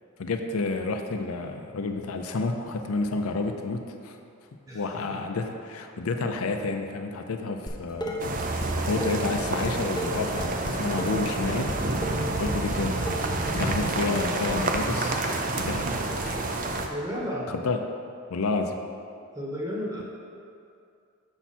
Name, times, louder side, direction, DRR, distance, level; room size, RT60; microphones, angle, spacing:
voice 1, 0.2-4.2 4.7-8.4 8.7-11.7 12.4-13.2 13.5-15.2 15.6-16.4 17.5-17.8 18.3-18.8, left 3 dB, 75° left, 5 dB, 0.5 m, -30 dB
Dishes pots and pans, 7.7-8.7 9.0-14.8, equal, 20° left, 0.5 m, -34 dB
sound 1, 8.2-16.9, right 2 dB, 35° right, 0.5 m, -29 dB
voice 2, 16.9-17.5 19.3-20.0, equal, 15° right, -4 dB, 1.1 m, -32 dB
7.0 x 5.9 x 4.2 m, 2.5 s
head